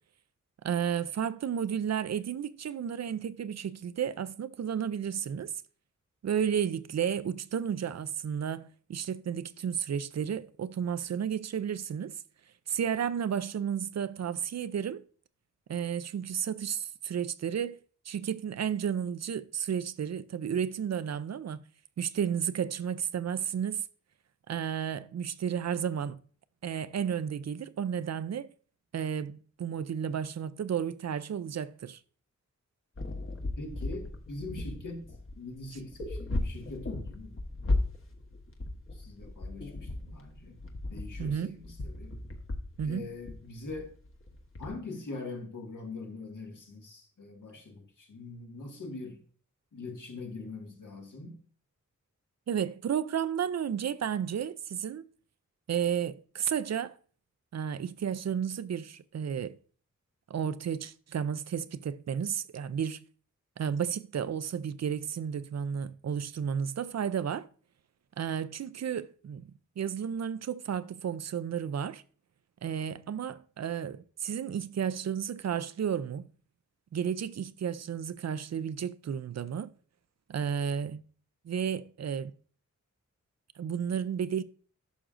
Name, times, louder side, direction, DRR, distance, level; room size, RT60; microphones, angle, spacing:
voice 1, 0.6-5.5 6.2-12.2 12.7-15.0 15.7-17.8 18.1-21.6 22.0-23.8 24.5-26.2 26.6-28.5 28.9-32.0 41.2-41.6 42.8-43.1 52.5-55.1 55.7-57.0 57.5-59.6 60.3-63.0 63.6-67.5 68.2-69.4 69.8-72.0 72.6-76.3 76.9-79.7 80.3-81.0 81.4-82.3 83.6-84.4, right 8 dB, 60° right, 0.4 m, -32 dB
sound 1, 33.0-44.7, left 2 dB, 45° left, 1.2 m, -36 dB
voice 2, 33.6-35.1 35.4-37.4 38.9-40.6 40.9-42.1 42.8-43.9 44.6-49.2 49.7-51.4, left 3 dB, 80° left, 1.9 m, -42 dB
11.5 x 6.0 x 2.5 m
wide cardioid pair, 80°, 31 cm